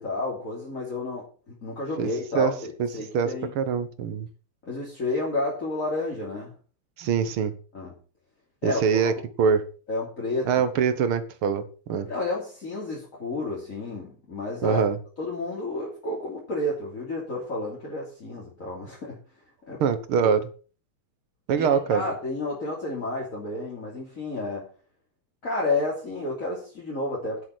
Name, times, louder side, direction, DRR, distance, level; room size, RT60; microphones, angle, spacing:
voice 1, 0.0-3.5 4.7-6.5 7.7-7.9 8.6-9.1 9.9-10.6 12.1-14.9 15.2-19.2 19.7-19.8 21.6-24.7 25.4-27.5, left 2 dB, 35° left, -4 dB, 3.4 m, -31 dB
voice 2, 3.1-4.3 7.0-7.5 8.6-9.1 9.4-9.6 10.5-11.6 11.9-12.1 14.6-15.0 19.8-20.4 21.5-22.0, right 6 dB, 80° right, 11 dB, 2.1 m, -23 dB
10.0 x 8.3 x 6.2 m, 0.38 s
omnidirectional pair, 2.3 m